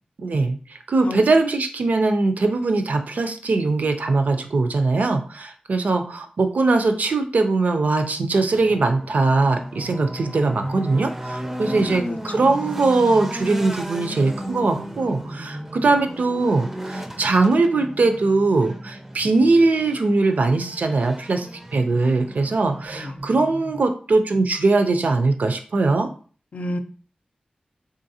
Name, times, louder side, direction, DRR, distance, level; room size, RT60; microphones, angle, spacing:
voice 1, 0.2-26.1, right 3 dB, 70° right, 7 dB, 0.5 m, -21 dB
sound 1, 8.5-23.8, right 1 dB, 10° right, 0.4 m, -35 dB
voice 2, 11.6-12.8 22.9-23.1 26.5-26.8, left 1 dB, 60° left, 8 dB, 0.4 m, -32 dB
3.7 x 3.1 x 2.7 m, 0.41 s
wide cardioid pair, 100°, 3 cm